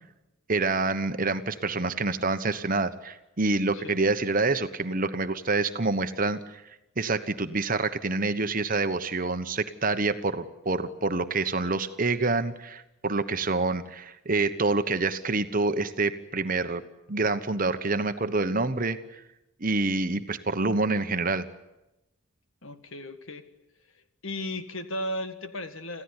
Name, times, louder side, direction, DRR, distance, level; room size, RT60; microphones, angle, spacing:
voice 1, 0.5-6.6 7.0-16.8 17.1-19.2 19.6-21.5, right 3 dB, 40° right, 10 dB, 1.1 m, -27 dB
voice 2, 22.6-23.4 24.2-26.0, left 1 dB, 65° left, 9 dB, 1.8 m, -35 dB
27.0 x 15.5 x 9.8 m, 0.96 s
head